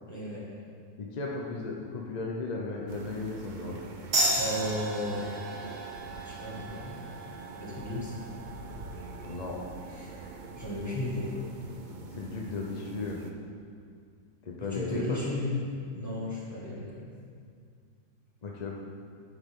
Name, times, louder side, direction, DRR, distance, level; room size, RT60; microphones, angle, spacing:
voice 1, 0.1-0.5 4.3-5.2 6.2-7.0 7.6-8.1 9.9-10.1 10.5-11.3 14.6-15.5 15.9-17.0, left 1 dB, 10° left, -7 dB, 1.9 m, -34 dB
voice 2, 1.0-3.7 9.2-9.6 12.1-13.2 14.4-15.2 18.4-18.7, left 3 dB, 40° left, -1 dB, 0.6 m, -35 dB
sound 1, 2.9-13.3, right 3 dB, 55° right, 0.5 m, -45 dB
sound 2, 4.1-11.2, right 1 dB, 85° right, 2.7 m, -35 dB
10.5 x 7.9 x 3.7 m, 2.2 s
omnidirectional pair, 1.7 m